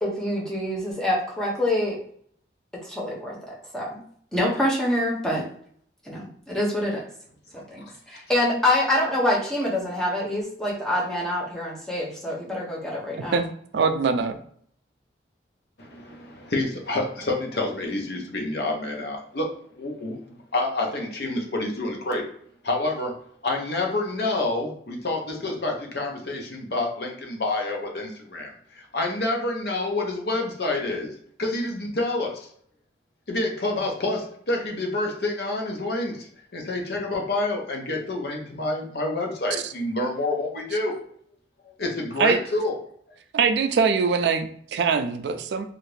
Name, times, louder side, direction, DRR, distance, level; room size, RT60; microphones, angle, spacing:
voice 1, 0.0-2.0 2.7-4.0 4.3-5.4 6.1-7.0 7.5-13.4, left 1 dB, 5° left, -4 dB, 0.7 m, -26 dB
voice 2, 13.7-14.4 42.2-42.4 43.3-45.6, right 5 dB, 70° right, 8 dB, 0.3 m, -22 dB
voice 3, 15.8-22.3 22.6-23.2 23.4-31.1 31.4-32.5 33.3-41.0 41.8-42.8, left 2 dB, 60° left, 1 dB, 0.7 m, -28 dB
2.7 x 2.4 x 3.2 m, 0.63 s
head